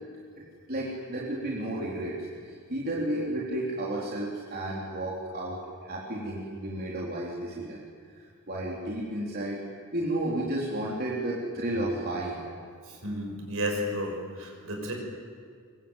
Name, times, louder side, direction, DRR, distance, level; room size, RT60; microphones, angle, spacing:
voice 1, 0.4-7.8 8.1-9.6 9.9-12.4, right 1 dB, 45° right, -4 dB, 3.9 m, -32 dB
voice 2, 12.9-14.9, equal, 65° right, 2 dB, 6.3 m, -32 dB
23.5 x 23.5 x 9.2 m, 2.1 s
head